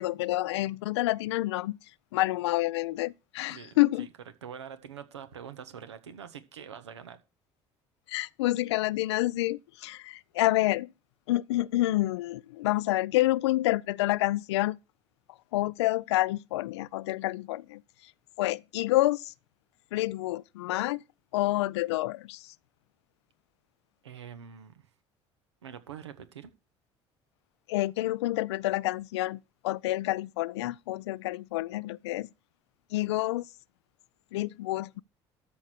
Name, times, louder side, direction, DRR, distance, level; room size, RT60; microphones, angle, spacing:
voice 1, 0.0-1.8 2.1-4.1 8.1-10.9 11.3-14.8 15.5-17.8 18.4-19.3 19.9-21.0 21.3-22.5 27.7-32.3 32.9-33.4 34.3-35.0, left 17 dB, 80° left, 0.4 m, -28 dB
voice 2, 3.5-4.1 4.4-7.2 24.0-24.9 25.6-26.5, right 8 dB, 90° right, 1.2 m, -45 dB
13.0 x 6.6 x 4.4 m
hypercardioid pair, 60°, 14 cm